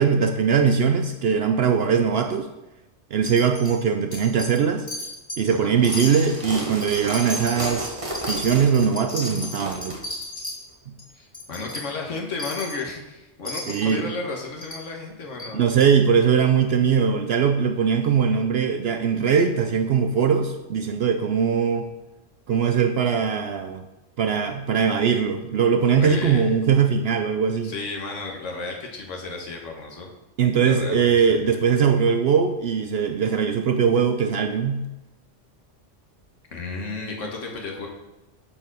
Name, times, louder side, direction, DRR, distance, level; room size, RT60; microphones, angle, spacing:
voice 1, 0.0-2.5 3.1-4.9 5.4-8.0 8.3-10.0 10.9-11.0 13.7-14.1 15.5-21.9 22.5-23.8 24.2-27.7 30.4-34.9, right 6 dB, 65° right, 7 dB, 0.7 m, -21 dB
Wind chime, 3.3-3.8 4.1-4.6 4.9-5.5 5.8-10.6 11.0-11.1 11.3-11.8 12.4-12.8 13.5-13.9 14.6-14.8 15.4-15.5 15.8-15.9, left 1 dB, 15° left, 2.2 m, -34 dB
sound 1, 5.7-10.0, right 1 dB, 25° right, 1.4 m, -33 dB
voice 2, 11.1-15.6 26.0-26.5 27.6-30.1 30.6-31.6 36.5-37.9, left 3 dB, 85° left, 0 dB, 1.6 m, -33 dB
8.6 x 4.7 x 6.1 m, 1.0 s
omnidirectional pair, 1.3 m